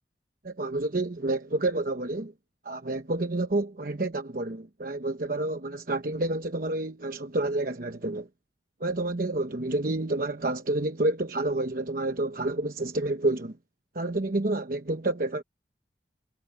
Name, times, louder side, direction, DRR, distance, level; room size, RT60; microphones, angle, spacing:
voice 1, 0.4-2.3 2.6-8.3 8.8-13.6 13.9-15.4, right 2 dB, 50° right, 1.0 m, -29 dB
head